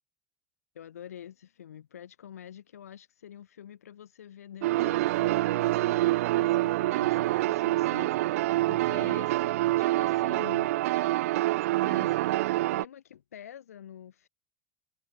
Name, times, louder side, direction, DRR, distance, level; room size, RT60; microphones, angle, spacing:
voice 1, 0.7-10.7 11.8-14.3, left 9 dB, 75° left, 5.9 m, -47 dB
sound 1, 4.6-12.8, right 17 dB, 65° right, 0.5 m, -26 dB
figure-of-eight pair, 75°, 8 cm